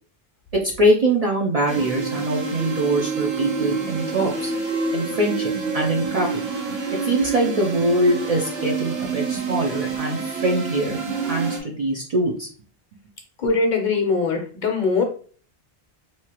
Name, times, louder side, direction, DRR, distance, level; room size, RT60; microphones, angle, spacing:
voice 1, 0.8-4.5 4.9-6.4 7.0-12.5, right 1 dB, 50° right, -1 dB, 0.5 m, -23 dB
sound 1, 1.7-11.6, right 4 dB, 80° right, 1.0 m, -27 dB
voice 2, 13.4-15.0, left 4 dB, 55° left, 3 dB, 0.7 m, -21 dB
3.0 x 2.3 x 2.8 m, 0.43 s
omnidirectional pair, 1.0 m